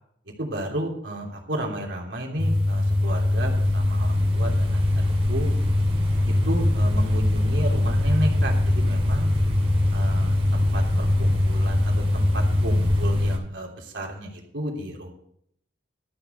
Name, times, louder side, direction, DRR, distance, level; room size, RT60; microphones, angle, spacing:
voice 1, 0.4-4.8 5.3-5.5 6.5-9.3 9.9-15.1, right 1 dB, 80° right, 0 dB, 3.1 m, -32 dB
sound 1, 2.4-13.4, left 1 dB, 30° right, 3.0 m, -22 dB
13.0 x 6.7 x 6.8 m, 0.70 s
head